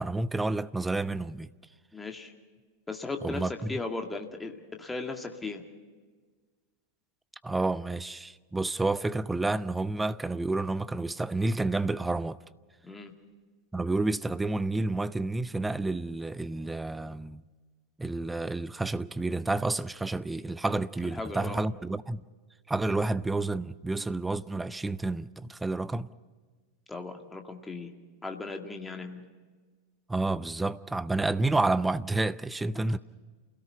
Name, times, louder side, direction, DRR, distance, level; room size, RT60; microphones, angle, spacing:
voice 1, 0.0-1.5 3.2-3.7 7.4-12.4 13.7-17.4 18.0-22.2 22.7-26.1 30.1-33.0, right 2 dB, 10° right, 0.6 m, -30 dB
voice 2, 1.9-2.3 2.9-5.6 12.8-13.1 21.0-21.6 26.9-27.9 28.2-29.3, left 3 dB, 10° left, 2.0 m, -37 dB
28.5 x 17.5 x 5.8 m
figure-of-eight pair, 90°, 0 cm